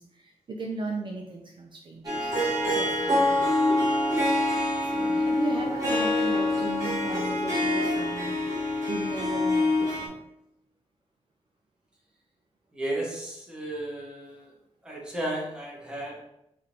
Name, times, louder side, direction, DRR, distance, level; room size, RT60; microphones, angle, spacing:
voice 1, 0.0-3.8 4.8-8.4 8.8-10.2, right 2 dB, 45° right, 0 dB, 0.5 m, -37 dB
Harp, 2.0-10.1, left 1 dB, 30° right, 1.4 m, -25 dB
voice 2, 12.7-14.4 14.8-16.2, right 1 dB, 10° right, -3 dB, 1.0 m, -34 dB
3.5 x 2.5 x 4.4 m, 0.81 s
wide cardioid pair, 135°, 11 cm